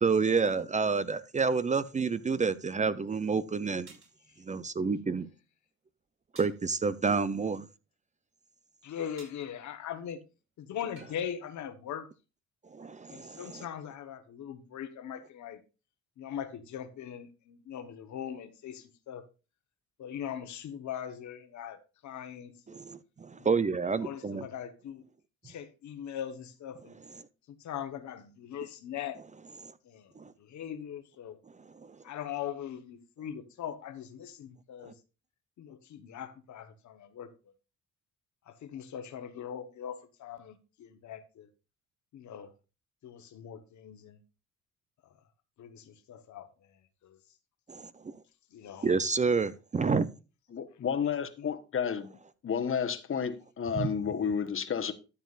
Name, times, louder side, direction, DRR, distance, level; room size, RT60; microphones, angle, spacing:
voice 1, 0.0-3.9 4.4-5.3 6.4-7.7 12.7-13.6 22.7-24.4 29.6-29.7 30.2-30.3 31.8-32.0 34.8-34.9 47.7-48.1 48.8-50.1 53.7-53.9, right 5 dB, 25° right, 0.5 m, -29 dB
sound 1, 3.9-4.2 6.4-6.7 9.2-9.5 11.0-11.2, right 3 dB, 45° right, 5.3 m, -53 dB
voice 2, 8.8-10.2 10.6-12.1 13.1-15.6 16.2-19.2 20.0-21.8 22.0-22.8 23.4-23.6 24.0-25.0 25.4-27.0 27.5-29.2 29.8-30.1 30.4-31.4 32.0-34.9 35.6-37.3 38.5-41.5 42.1-42.5 43.0-44.2 45.6-46.7 47.0-47.2 48.5-49.0 51.0-51.5, left 9 dB, 70° left, 1.2 m, -41 dB
voice 3, 50.5-52.1 52.4-54.9, left 7 dB, 45° left, 1.2 m, -31 dB
13.0 x 7.3 x 2.5 m
cardioid pair, 90°, 30 cm